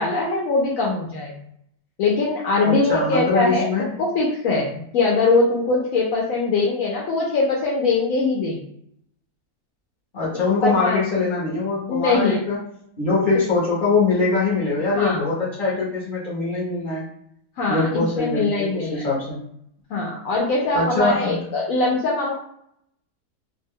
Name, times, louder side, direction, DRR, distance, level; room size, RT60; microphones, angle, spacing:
voice 1, 0.0-1.3 2.0-8.6 10.6-11.0 11.9-12.4 14.9-15.2 17.6-19.1 19.9-22.3, left 3 dB, 70° left, -3 dB, 0.9 m, -22 dB
voice 2, 2.6-4.0 10.1-12.6 13.0-17.1 17.7-19.4 20.7-21.4, left 3 dB, 40° left, -8 dB, 0.8 m, -23 dB
2.6 x 2.1 x 3.5 m, 0.71 s
omnidirectional pair, 1.7 m